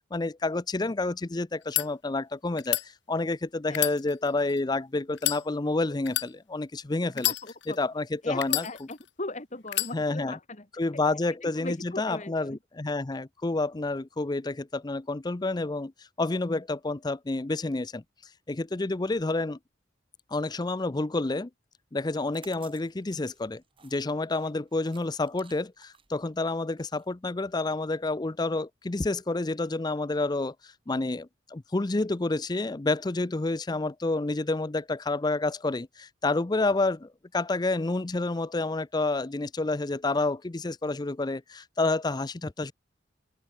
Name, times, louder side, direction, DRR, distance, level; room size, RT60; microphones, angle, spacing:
voice 1, 0.1-7.3 7.8-8.6 9.9-10.4 10.8-18.0 18.5-19.6 20.3-21.5 21.9-42.7, left 2 dB, 20° left, 0.5 m, -29 dB
sound 1, 1.5-1.9 2.6-2.9 3.7-4.6 5.2-5.4 6.1-6.3 7.1-7.8 8.4-9.1 9.7-9.9, left 16 dB, 75° left, 2.0 m, -29 dB
voice 2, 7.2-7.8 8.2-10.7 11.4-12.6, left 2 dB, 40° left, 2.6 m, -39 dB
sound 2, 22.0-27.8, right 6 dB, 30° right, 4.6 m, -57 dB
open air
head